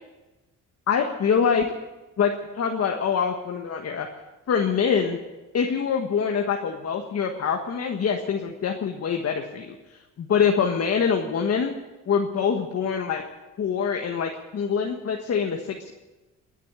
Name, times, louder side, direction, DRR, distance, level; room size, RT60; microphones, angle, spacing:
voice 1, 0.9-1.7 2.2-4.1 4.5-5.2 5.5-9.7 10.2-11.7 12.1-13.2 13.6-15.9, left 6 dB, 55° left, 3 dB, 1.5 m, -24 dB
21.5 x 8.4 x 8.1 m, 1.1 s
cardioid pair, 90°, 30 cm